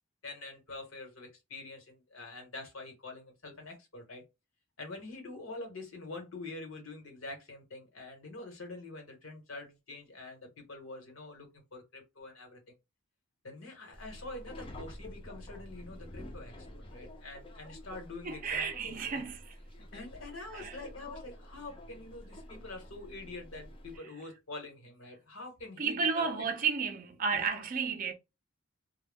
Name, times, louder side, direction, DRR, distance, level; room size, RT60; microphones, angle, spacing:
voice 1, 0.2-4.2 4.8-12.6 13.4-19.3 19.9-26.4 27.3-27.6, left 2 dB, 75° left, 1.1 m, -46 dB
Subway metro underground, 13.9-24.0, left 1 dB, 25° left, 0.5 m, -48 dB
voice 2, 18.2-19.6 20.5-20.8 25.8-28.1, right 5 dB, 40° right, 0.4 m, -32 dB
2.2 x 2.1 x 3.4 m
head